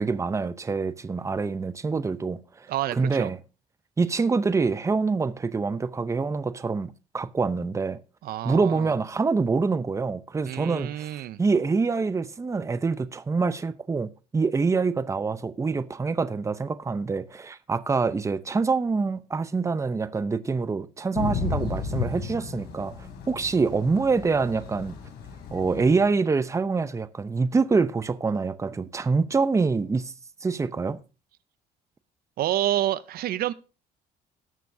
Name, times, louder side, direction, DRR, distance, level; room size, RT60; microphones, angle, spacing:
voice 1, 0.0-3.4 4.0-8.0 8.4-11.1 11.4-23.0 23.3-25.0 25.5-30.1 30.4-31.0, right 4 dB, 15° right, 0.6 m, -25 dB
voice 2, 2.7-3.3 8.2-8.9 10.5-11.4 32.4-33.5, right 13 dB, 65° right, 0.5 m, -28 dB
Thunder / Rain, 21.1-26.1, left 5 dB, 80° left, 3.5 m, -33 dB
18.0 x 6.9 x 2.7 m
cardioid pair, 110°, 17 cm